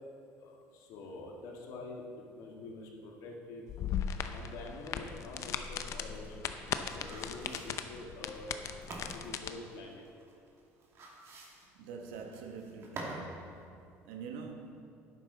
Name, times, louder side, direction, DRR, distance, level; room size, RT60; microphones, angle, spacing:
voice 1, 0.4-2.0 2.3-3.7 4.3-6.3 6.9-8.6 9.1-10.0, left 2 dB, 70° left, 1.8 m, -46 dB
sound 1, 3.7-9.5, left 8 dB, 55° left, 0.6 m, -38 dB
sound 2, 5.9-13.3 13.6-13.7, right 2 dB, 50° right, 2.3 m, -47 dB
voice 2, 11.7-13.8 14.0-14.8, right 5 dB, 90° right, 1.1 m, -45 dB
11.0 x 9.4 x 4.0 m
supercardioid pair, 95°, 6 cm